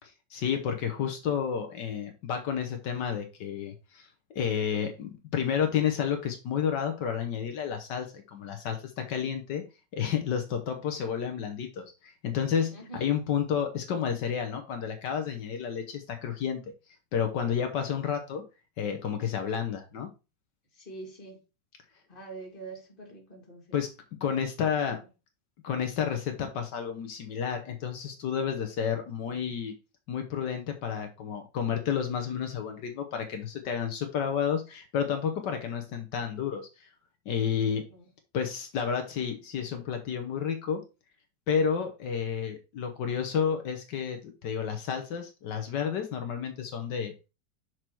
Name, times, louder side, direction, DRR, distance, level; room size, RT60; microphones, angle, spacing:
voice 1, 0.0-9.6 9.9-16.6 17.1-18.4 18.8-20.1 23.7-23.9 24.2-25.0 25.6-29.7 30.1-36.9 37.2-37.8 38.3-40.8 41.5-47.3, left 7 dB, 75° left, 5 dB, 1.6 m, -31 dB
voice 2, 12.7-13.1 20.7-21.4 22.1-23.6 37.9-38.1, right 3 dB, 30° left, 0 dB, 2.1 m, -44 dB
6.2 x 4.8 x 4.5 m, 0.29 s
omnidirectional pair, 1.9 m